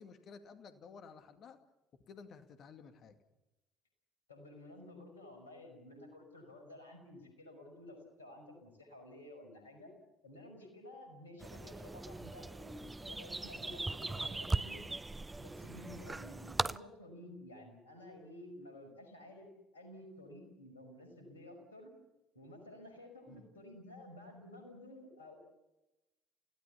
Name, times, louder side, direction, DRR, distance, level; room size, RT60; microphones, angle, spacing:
voice 1, 0.0-1.6 2.1-3.2 23.3-23.5, left 5 dB, 50° left, 8 dB, 2.2 m, -54 dB
voice 2, 4.3-9.9 10.2-14.8 15.4-19.5 19.7-21.9 22.3-25.4, left 1 dB, 80° left, 5 dB, 5.3 m, -52 dB
sound 1, 11.4-16.8, right 2 dB, 15° right, 0.7 m, -39 dB
29.5 x 16.5 x 7.2 m, 0.99 s
figure-of-eight pair, 55°, 0 cm